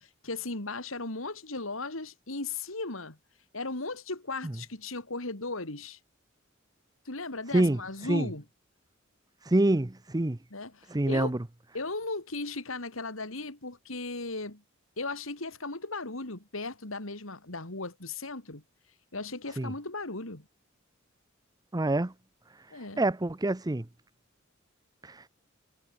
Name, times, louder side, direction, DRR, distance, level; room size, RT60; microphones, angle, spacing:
voice 1, 0.0-3.2 3.5-6.0 7.1-8.4 10.5-11.3 11.7-14.6 15.0-18.6 19.1-20.4 22.7-23.1, left 3 dB, 90° left, 3.7 m, -37 dB
voice 2, 9.5-10.4 10.9-11.4 19.6-19.7 21.7-22.1 23.0-23.9 25.0-25.2, right 1 dB, 20° right, 0.7 m, -26 dB
head